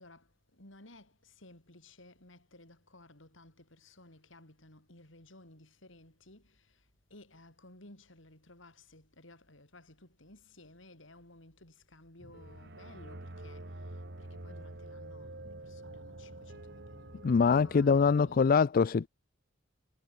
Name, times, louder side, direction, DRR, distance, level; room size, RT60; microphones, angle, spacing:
voice 1, 0.0-18.8, left 2 dB, 70° left, 5.7 m, -57 dB
sound 1, 12.2-18.5, right 1 dB, 55° right, 2.1 m, -47 dB
voice 2, 17.2-19.1, left 5 dB, 45° left, 0.4 m, -24 dB
head